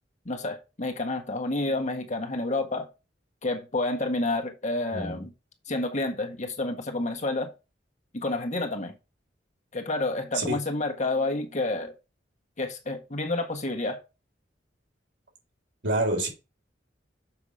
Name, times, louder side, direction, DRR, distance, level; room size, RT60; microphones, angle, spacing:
voice 1, 0.2-2.9 3.4-5.3 5.7-7.5 8.1-8.9 9.7-11.9 12.6-14.0, left 2 dB, 40° left, 1.6 m, -29 dB
voice 2, 15.8-16.3, right 2 dB, 70° right, 3.9 m, -26 dB
7.2 x 5.9 x 4.8 m
head